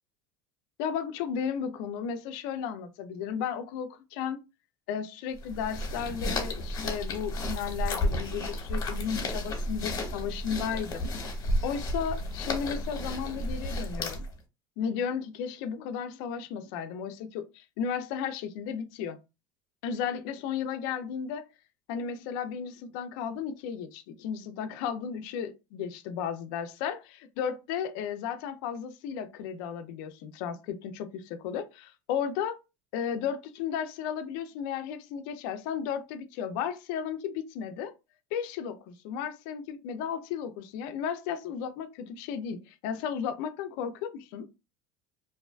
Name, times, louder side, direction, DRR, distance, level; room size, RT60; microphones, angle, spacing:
voice 1, 0.8-4.4 4.9-11.1 11.6-14.3 14.8-19.2 19.8-21.4 21.9-32.6 32.9-37.9 38.3-44.5, left 7 dB, 75° left, 0.5 m, -34 dB
sound 1, 5.4-14.4, left 1 dB, 35° left, 1.0 m, -32 dB
2.6 x 2.2 x 2.3 m
supercardioid pair, 120°, 11 cm